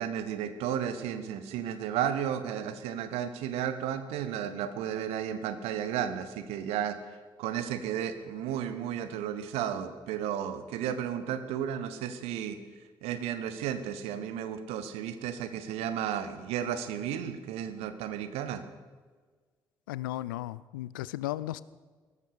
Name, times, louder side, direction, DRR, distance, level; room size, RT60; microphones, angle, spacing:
voice 1, 0.0-12.6 13.0-18.6, right 9 dB, 65° right, 11 dB, 1.2 m, -33 dB
voice 2, 19.9-21.6, left 15 dB, 75° left, 19 dB, 0.4 m, -35 dB
18.0 x 13.5 x 5.0 m, 1.4 s
figure-of-eight pair, 45°, 11 cm